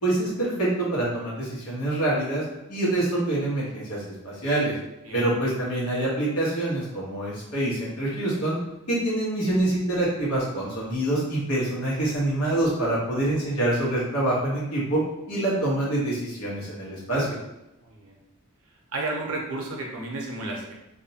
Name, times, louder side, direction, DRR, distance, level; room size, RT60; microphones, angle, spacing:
voice 1, 0.0-4.7 5.1-8.6 8.9-15.0 15.3-17.3, right 1 dB, 80° left, -6 dB, 1.1 m, -26 dB
voice 2, 17.8-18.2 18.9-20.7, right 2 dB, 70° right, -1 dB, 0.7 m, -32 dB
2.6 x 2.1 x 2.8 m, 0.93 s
head